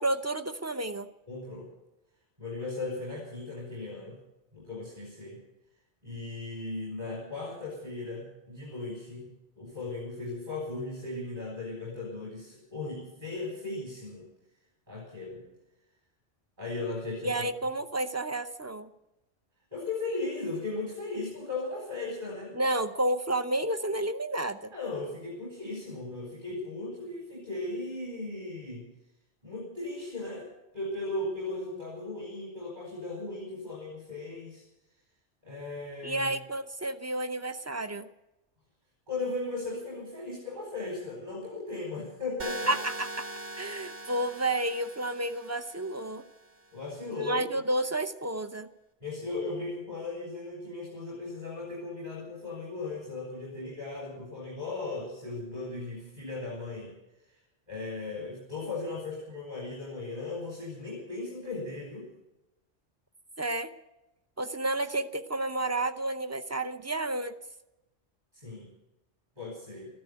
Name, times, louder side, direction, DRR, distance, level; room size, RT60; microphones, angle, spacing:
voice 1, 0.0-1.1 17.2-18.9 22.5-24.7 36.0-38.1 42.7-43.3 43.6-46.2 47.2-48.7 63.4-63.7 64.4-67.3, right 1 dB, 20° right, 10 dB, 0.5 m, -31 dB
voice 2, 1.3-1.7 2.4-4.2 4.5-5.4 6.0-9.3 9.6-14.2 14.9-15.4 16.6-17.5 19.7-22.5 24.7-28.9 29.4-30.5 30.7-34.6 35.4-36.3 39.1-42.7 46.7-47.4 49.0-56.9 57.2-57.4 57.7-62.1 68.3-68.7 69.4-69.9, left 3 dB, 35° right, -3 dB, 4.9 m, -37 dB
sound 1, 42.4-46.4, right 2 dB, 55° right, 2.0 m, -41 dB
14.5 x 12.0 x 8.3 m, 0.96 s
omnidirectional pair, 1.2 m